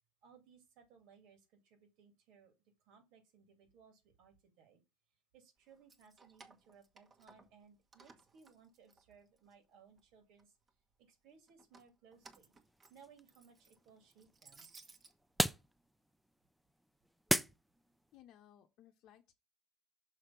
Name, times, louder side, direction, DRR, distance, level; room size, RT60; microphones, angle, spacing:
voice 1, 0.2-2.5 2.8-4.8 5.3-10.6 11.0-12.5 12.9-14.7, right 6 dB, 70° right, 2.5 m, -63 dB
Keys jangling, 5.7-7.6 7.9-9.5 10.0-10.7 11.5-15.1, right 4 dB, 35° right, 1.3 m, -61 dB
sound 1, 12.1-18.2, equal, ahead, 0.5 m, -40 dB
voice 2, 18.1-19.3, left 11 dB, 60° left, 0.8 m, -61 dB
6.5 x 3.4 x 5.8 m
supercardioid pair, 90°, 0 cm